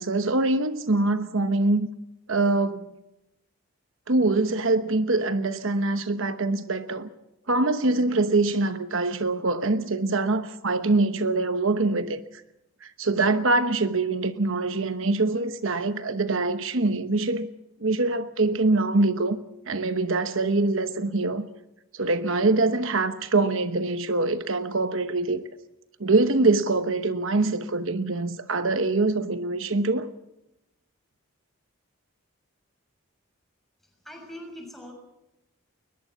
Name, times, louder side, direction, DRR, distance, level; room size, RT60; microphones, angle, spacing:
voice 1, 0.0-1.9 2.3-2.9 4.1-7.1 7.5-12.2 12.8-17.5 17.8-19.4 19.7-21.5 21.9-25.4 26.0-30.1, right 2 dB, 65° right, 1.0 m, -24 dB
voice 2, 33.8-34.9, equal, ahead, 6.4 m, -42 dB
22.0 x 21.0 x 7.1 m
head